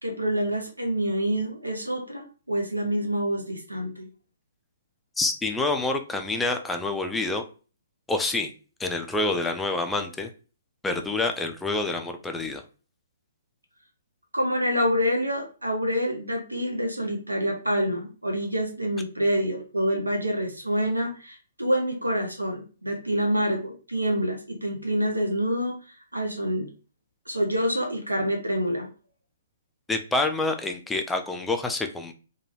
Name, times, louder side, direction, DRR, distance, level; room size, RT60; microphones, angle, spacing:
voice 1, 0.0-4.1 14.3-26.7 27.3-28.9, equal, 90° right, 3 dB, 0.5 m, -27 dB
voice 2, 5.2-7.4 8.1-8.5 8.8-10.3 10.8-12.6 29.9-32.1, left 2 dB, 5° left, 5 dB, 0.3 m, -27 dB
2.9 x 2.3 x 2.6 m, 0.36 s
figure-of-eight pair, 125°, 0 cm